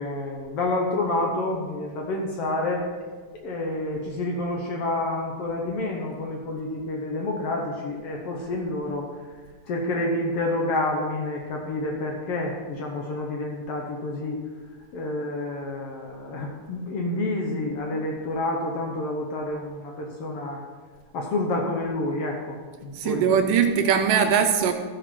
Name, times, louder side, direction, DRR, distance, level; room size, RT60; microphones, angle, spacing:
voice 1, 0.0-2.8 3.4-9.1 9.7-14.4 14.9-20.6 21.1-23.3, left 2 dB, 80° left, 0 dB, 1.3 m, -29 dB
voice 2, 22.9-24.7, right 7 dB, 80° right, 5 dB, 2.1 m, -21 dB
14.5 x 6.5 x 4.4 m, 1.5 s
omnidirectional pair, 4.2 m